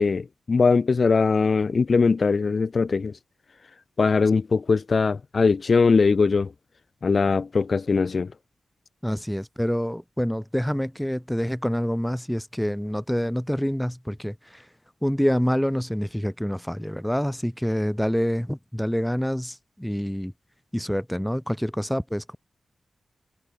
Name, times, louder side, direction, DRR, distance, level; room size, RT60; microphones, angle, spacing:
voice 1, 0.0-3.1 4.0-6.5 7.0-8.3, left 4 dB, 50° left, 5.2 m, -21 dB
voice 2, 9.0-14.7 15.0-20.3 20.7-22.4, equal, 5° left, 3.7 m, -26 dB
wide cardioid pair, 95°, 0 cm